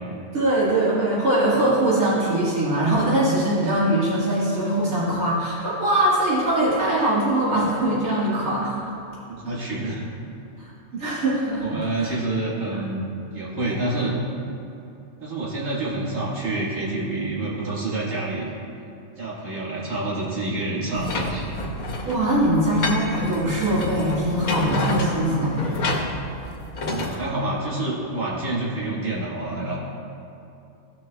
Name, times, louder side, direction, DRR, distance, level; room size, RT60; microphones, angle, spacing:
voice 1, 0.3-8.7 10.6-10.7 11.0-12.1 22.1-25.8, right 1 dB, 90° right, -9 dB, 2.2 m, -22 dB
voice 2, 9.3-10.0 10.9-11.0 11.6-14.2 14.4-14.5 15.2-18.5 19.2-21.5 26.8-29.8, right 2 dB, 70° right, -6 dB, 2.2 m, -28 dB
sound 1, 21.0-27.2, left 2 dB, 85° left, 1.3 m, -29 dB
16.0 x 6.0 x 2.3 m, 2.7 s
omnidirectional pair, 1.4 m